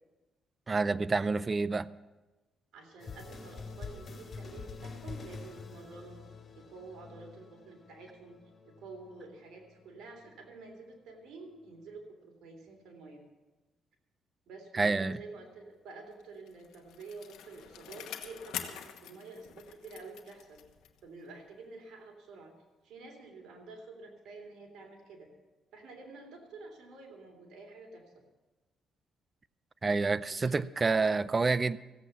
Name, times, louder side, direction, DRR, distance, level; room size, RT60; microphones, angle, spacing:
voice 1, 0.7-1.9 14.7-15.2 29.8-31.8, right 3 dB, 30° right, 0.5 m, -28 dB
voice 2, 2.7-6.2 6.5-8.4 8.8-13.2 14.5-20.6 21.0-22.5 22.8-25.3 25.7-28.0 30.3-30.6, right 3 dB, 75° right, 3.4 m, -49 dB
sound 1, 3.0-10.7, left 4 dB, 40° left, 3.2 m, -47 dB
Bicycle, 16.2-21.1 21.5-21.6, left 10 dB, 85° left, 1.1 m, -45 dB
15.5 x 8.3 x 7.0 m
cardioid pair, 90°, 0 cm